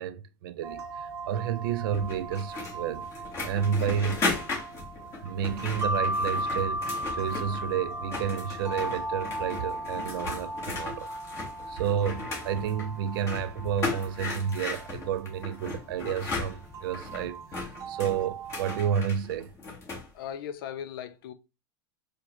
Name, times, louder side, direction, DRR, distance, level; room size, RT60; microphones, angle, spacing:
voice 1, 0.0-3.1 3.4-4.3 5.2-11.1 11.7-19.5, right 8 dB, 75° right, 0.4 m, -31 dB
sound 1, 0.6-18.9, right 1 dB, 25° right, 0.7 m, -37 dB
sound 2, 1.9-7.7 8.0-20.1, left 3 dB, 25° left, 1.2 m, -37 dB
sound 3, 7.4-12.7, left 4 dB, 45° left, 0.8 m, -55 dB
voice 2, 20.1-21.3, left 9 dB, 80° left, 0.5 m, -37 dB
4.6 x 2.1 x 2.9 m
supercardioid pair, 155°, 12 cm